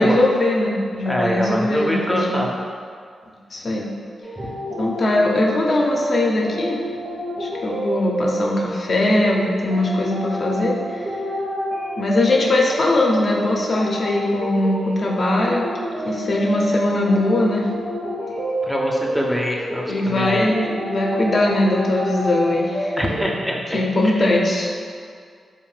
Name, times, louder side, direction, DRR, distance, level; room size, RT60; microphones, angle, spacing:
voice 1, 0.0-2.4 3.5-3.9 4.8-6.8 7.4-11.1 12.0-15.6 16.0-17.7 19.9-23.0 23.7-24.7, left 1 dB, 55° left, -2 dB, 0.5 m, -20 dB
voice 2, 1.1-2.5 4.4-4.5 18.6-20.5 23.0-23.8 24.2-24.3, equal, 5° left, -2 dB, 0.4 m, -24 dB
sound 1, 4.2-23.2, equal, 75° right, 0.6 m, -28 dB
2.6 x 2.1 x 3.2 m, 2.1 s
supercardioid pair, 45°, 0 cm